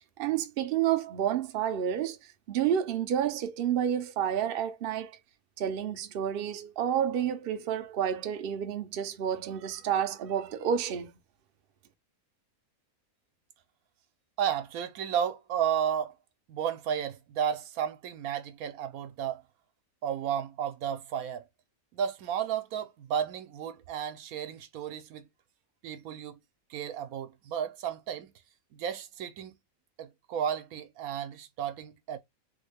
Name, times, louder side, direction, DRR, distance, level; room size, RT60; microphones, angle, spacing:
voice 1, 0.2-2.2 2.5-5.1 5.6-11.1, right 9 dB, 60° right, 0.6 m, -30 dB
voice 2, 14.4-16.1 16.5-19.4 20.0-21.4 21.9-25.3 25.8-26.4 26.7-28.3 28.7-29.6 30.0-32.2, right 9 dB, 80° right, 1.1 m, -33 dB
3.4 x 2.1 x 3.3 m
omnidirectional pair, 1.5 m